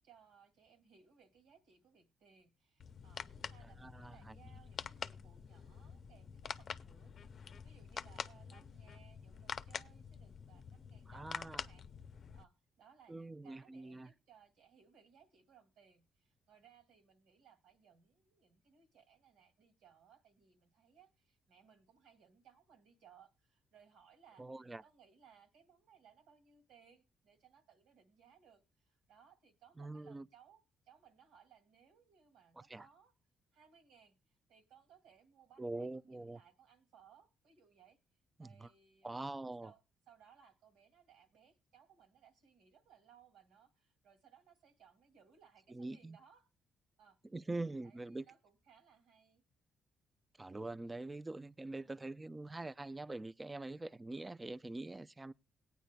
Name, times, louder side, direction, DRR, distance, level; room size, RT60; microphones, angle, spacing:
voice 1, 0.0-33.1 33.5-38.0 38.4-39.8 40.1-46.5 47.0-47.2 47.5-49.4 51.7-52.2, right 7 dB, 85° right, 2.3 m, -65 dB
sound 1, 2.8-12.4, left 6 dB, 50° left, 0.6 m, -47 dB
voice 2, 3.6-4.4 11.1-11.7 13.1-14.1 24.4-24.8 29.8-30.2 32.6-32.9 35.6-36.4 38.4-38.7 39.0-39.7 45.7-46.2 47.3-48.3 50.4-55.3, right 2 dB, 20° right, 0.4 m, -44 dB
18.5 x 9.3 x 2.2 m
cardioid pair, 90°, 0 cm